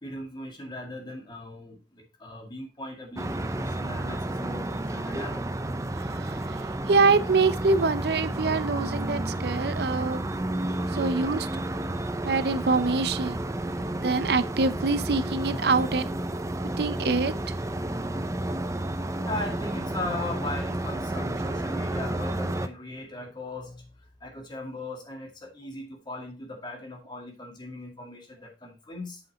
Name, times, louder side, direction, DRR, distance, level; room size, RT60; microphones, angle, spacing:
voice 1, 0.0-5.5 17.8-18.9 19.2-29.2, left 2 dB, 25° left, 2.0 m, -39 dB
sound 1, 3.2-22.7, right 1 dB, 15° right, 0.5 m, -31 dB
voice 2, 5.9-10.3 10.9-11.6 12.2-13.4 14.0-16.1 16.8-17.6, right 4 dB, 60° right, 0.6 m, -25 dB
7.9 x 5.4 x 4.1 m
head